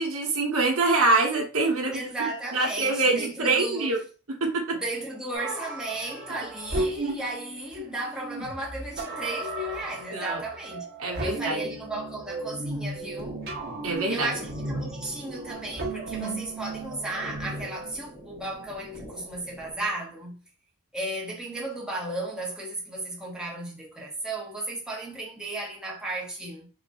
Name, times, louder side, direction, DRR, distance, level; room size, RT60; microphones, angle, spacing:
voice 1, 0.0-2.0 2.5-4.0 4.4-4.8 10.1-10.4 11.0-11.6 13.8-14.3, right 3 dB, 70° right, 1.2 m, -24 dB
voice 2, 1.9-3.9 4.7-10.8 11.2-13.4 14.1-20.4 20.9-26.7, right 2 dB, 5° right, 1.1 m, -34 dB
sound 1, 5.3-17.9, right 2 dB, 45° right, 1.9 m, -35 dB
sound 2, 12.9-19.9, equal, 25° right, 1.8 m, -45 dB
5.0 x 3.2 x 2.6 m
head